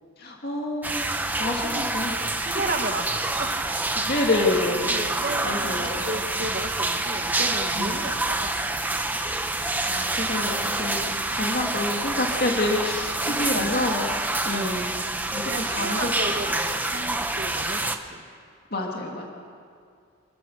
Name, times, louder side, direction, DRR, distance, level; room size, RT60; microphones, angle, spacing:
voice 1, 0.2-1.1 1.4-2.1 4.0-5.0 5.4-6.1 7.8-8.1 9.6-14.1 14.4-15.0 15.3-16.1 16.5-16.6 18.7-19.3, left 2 dB, 45° left, 0 dB, 2.4 m, -28 dB
sound 1, 0.8-18.0, right 2 dB, 10° right, 0.8 m, -27 dB
voice 2, 2.4-4.0 4.9-8.7 11.4-11.5 13.3-13.7 14.5-14.9 15.4-18.2, right 2 dB, 45° right, 4 dB, 1.7 m, -34 dB
28.5 x 15.0 x 6.6 m, 2.3 s
head